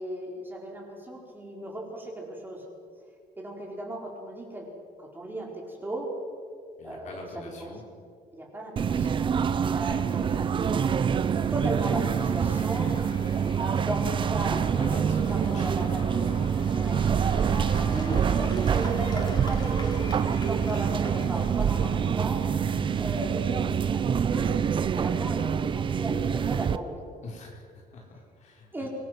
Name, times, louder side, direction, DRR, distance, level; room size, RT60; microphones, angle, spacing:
voice 1, 0.0-2.6 3.4-4.7 5.0-6.1 6.8-7.7 8.3-11.0 11.5-13.2 13.6-16.2 16.7-17.0 17.4-22.4 22.9-27.0 28.7-28.9, right 1 dB, 15° right, -2 dB, 4.7 m, -36 dB
voice 2, 6.8-7.9 14.7-17.2 22.6-22.9 27.2-28.9, left 2 dB, 50° left, -1 dB, 4.3 m, -44 dB
sound 1, 8.8-26.8, right 7 dB, 35° right, 0.7 m, -26 dB
Cheering / Applause / Crowd, 9.4-23.9, left 2 dB, 30° left, 3.4 m, -45 dB
sound 2, 11.5-26.3, right 3 dB, 60° right, 6.1 m, -51 dB
25.0 x 21.0 x 6.1 m, 2.1 s
cardioid pair, 150°, 15 cm